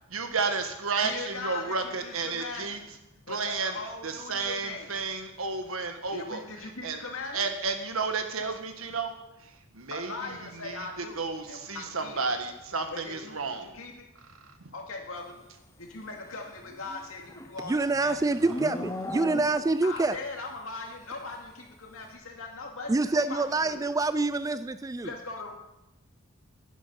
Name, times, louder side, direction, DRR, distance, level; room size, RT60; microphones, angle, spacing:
voice 1, 0.1-2.8 3.3-3.8 4.0-6.4 6.8-7.0 7.3-9.1 9.4-13.7, right 4 dB, 70° right, 7 dB, 1.5 m, -32 dB
voice 2, 1.0-2.8 3.3-5.0 6.1-7.4 9.9-12.3 12.9-14.1 14.7-15.3 15.8-18.2 19.8-23.9 25.0-25.5, left 3 dB, 70° left, 1 dB, 2.4 m, -40 dB
Livestock farm animals working animals, 16.6-19.9, left 1 dB, 15° left, 0.8 m, -38 dB
voice 3, 17.6-20.2 22.9-25.1, right 3 dB, 15° right, 13 dB, 0.3 m, -26 dB
11.5 x 11.0 x 5.4 m, 0.91 s
head